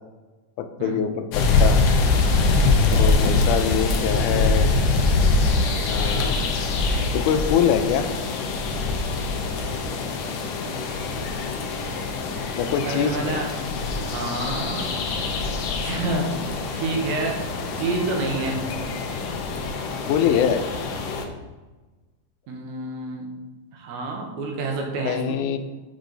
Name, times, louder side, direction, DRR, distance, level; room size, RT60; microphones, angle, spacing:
voice 1, 0.6-1.8 2.9-4.7 5.9-6.4 7.1-8.1 12.6-13.4 20.1-20.6 25.1-25.6, left 8 dB, 85° left, 9 dB, 2.1 m, -24 dB
sound 1, 1.3-21.2, left 3 dB, 70° left, 1.5 m, -24 dB
voice 2, 12.8-13.5 14.0-14.9 15.8-16.3 16.7-17.4 17.8-18.6 22.5-23.3 23.7-25.4, right 2 dB, 70° right, 1 dB, 2.5 m, -28 dB
6.3 x 6.3 x 4.0 m, 1.2 s
omnidirectional pair, 3.5 m